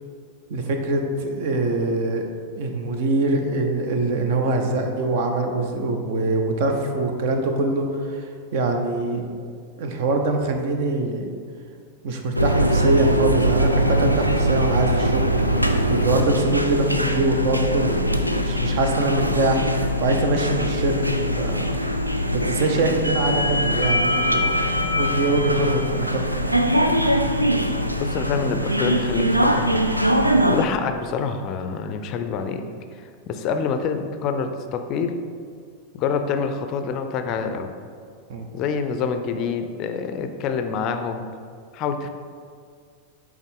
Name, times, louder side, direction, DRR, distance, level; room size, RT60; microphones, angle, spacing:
voice 1, 0.5-2.3 2.6-8.3 8.5-9.2 9.8-11.3 12.0-21.7 22.3-26.3 38.3-38.5, right 2 dB, 50° right, 4 dB, 0.7 m, -23 dB
sound 1, 12.3-30.7, equal, 90° right, 0.3 m, -22 dB
voice 2, 28.0-29.8 30.5-32.6 32.9-35.2 35.9-37.7 38.5-41.3 41.7-42.1, left 6 dB, 40° left, 7 dB, 0.4 m, -26 dB
8.0 x 3.5 x 3.7 m, 2.2 s
figure-of-eight pair, 90°, 0 cm